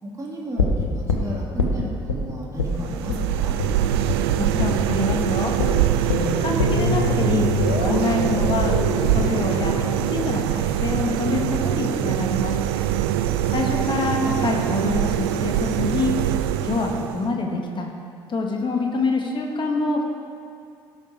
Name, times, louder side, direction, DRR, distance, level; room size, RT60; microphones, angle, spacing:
voice 1, 0.0-3.6, right 1 dB, 25° right, -4 dB, 2.9 m, -34 dB
sound 1, 0.6-2.2 2.6-2.8 3.1-3.2 3.6-3.7 4.1-4.2 4.6-4.8 5.1-5.2 5.6-11.6 11.9-12.0, left 3 dB, 85° left, 1.0 m, -25 dB
sound 2, 2.6-17.3, right 11 dB, 70° right, 0.5 m, -23 dB
voice 2, 4.4-5.5 6.4-8.8 9.1-9.7 10.1-12.6 13.5-16.1 16.6-17.9 18.3-20.0, left 3 dB, 35° left, 1 dB, 1.9 m, -25 dB
16.5 x 6.5 x 4.7 m, 2.3 s
figure-of-eight pair, 50°, 14 cm